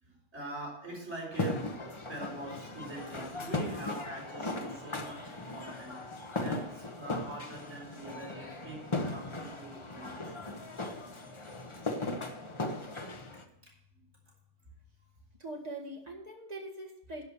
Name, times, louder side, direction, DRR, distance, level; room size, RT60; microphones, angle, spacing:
voice 1, 0.0-6.0 6.4-10.6 13.6-14.0, right 2 dB, 65° right, -4 dB, 5.2 m, -44 dB
sound 1, 1.3-13.4, left 2 dB, 25° left, 0.8 m, -38 dB
voice 2, 15.4-17.2, right 1 dB, 30° right, 0 dB, 1.9 m, -42 dB
11.0 x 5.6 x 8.4 m, 0.82 s
omnidirectional pair, 1.3 m